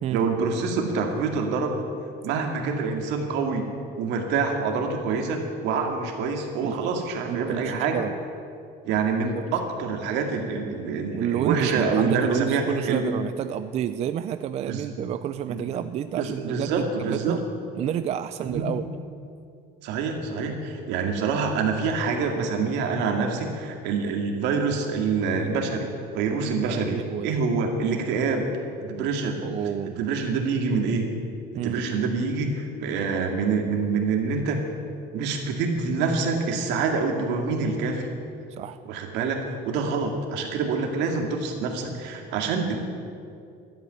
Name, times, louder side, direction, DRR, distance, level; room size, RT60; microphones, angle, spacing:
voice 1, 0.1-1.8 2.2-3.7 4.0-8.0 8.8-13.0 14.7-14.9 15.5-15.6 16.2-17.4 18.5-18.7 19.8-25.9 26.1-27.0 27.2-28.5 28.8-29.4 29.8-31.1 31.5-34.6 35.1-38.1 38.9-42.8, right 4 dB, 75° right, 3 dB, 2.2 m, -26 dB
voice 2, 6.6-7.0 7.3-8.2 9.2-9.4 11.1-17.4 17.8-18.9 26.4-27.4 28.2-28.3 29.4-30.0 31.6-31.8 38.6-38.8, right 10 dB, 35° right, 11 dB, 0.4 m, -30 dB
12.5 x 8.1 x 9.7 m, 2.5 s
cardioid pair, 155°, 18 cm